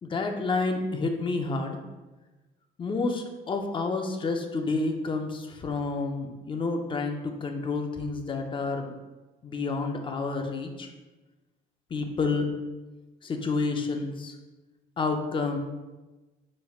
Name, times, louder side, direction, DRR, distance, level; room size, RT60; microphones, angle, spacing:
voice 1, 0.0-1.8 2.8-8.9 9.4-10.9 11.9-12.5 13.2-14.3 15.0-15.6, left 3 dB, 30° left, 4 dB, 0.6 m, -29 dB
5.2 x 4.3 x 2.4 m, 1.2 s
cardioid pair, 110°, 17 cm